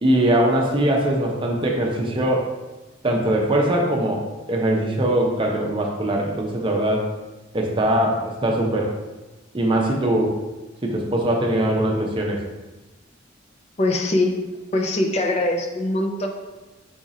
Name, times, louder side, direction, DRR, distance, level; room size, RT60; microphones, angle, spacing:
voice 1, 0.0-2.5 3.0-7.1 7.5-8.9 9.5-10.4 10.8-12.4, right 1 dB, 25° right, 0 dB, 0.6 m, -21 dB
voice 2, 13.8-14.4 14.7-16.3, left 2 dB, 35° left, 3 dB, 0.5 m, -22 dB
4.8 x 2.5 x 4.1 m, 1.1 s
head